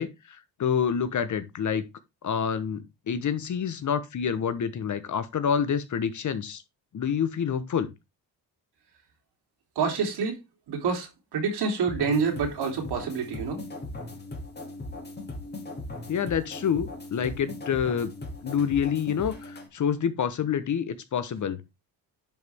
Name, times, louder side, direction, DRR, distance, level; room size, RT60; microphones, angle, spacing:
voice 1, 0.0-1.8 2.2-6.6 6.9-7.9 16.1-18.1 18.4-21.6, left 7 dB, 45° left, 1.1 m, -27 dB
voice 2, 9.8-10.4 10.7-13.6, right 5 dB, 70° right, 3.4 m, -27 dB
sound 1, 11.9-19.7, left 2 dB, 25° left, 2.7 m, -39 dB
10.5 x 5.3 x 3.5 m
cardioid pair, 100°, 41 cm